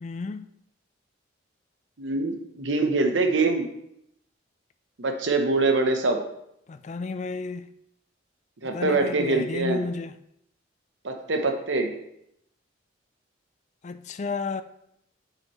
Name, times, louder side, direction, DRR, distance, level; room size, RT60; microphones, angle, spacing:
voice 1, 0.0-0.6 6.7-7.6 8.7-10.1 13.8-14.6, left 4 dB, 35° left, 0.3 m, -32 dB
voice 2, 2.0-3.7 5.0-6.2 8.6-9.8 11.0-11.9, right 3 dB, 70° right, 0.8 m, -24 dB
8.9 x 5.7 x 3.0 m
head